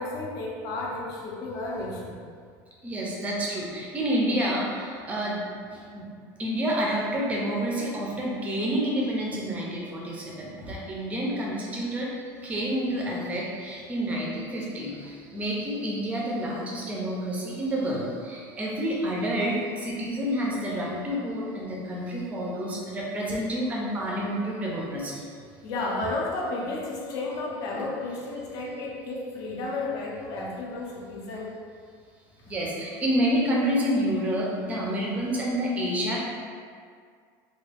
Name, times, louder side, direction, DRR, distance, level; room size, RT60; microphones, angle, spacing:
voice 1, 0.0-2.2 10.5-10.8 25.6-31.5, left 2 dB, 40° left, -2 dB, 0.5 m, -32 dB
voice 2, 2.8-6.1 6.4-12.1 12.4-25.3 27.7-27.8 32.5-36.2, equal, 15° right, -4 dB, 0.5 m, -29 dB
3.4 x 2.3 x 3.3 m, 2.1 s
cardioid pair, 175°, 10 cm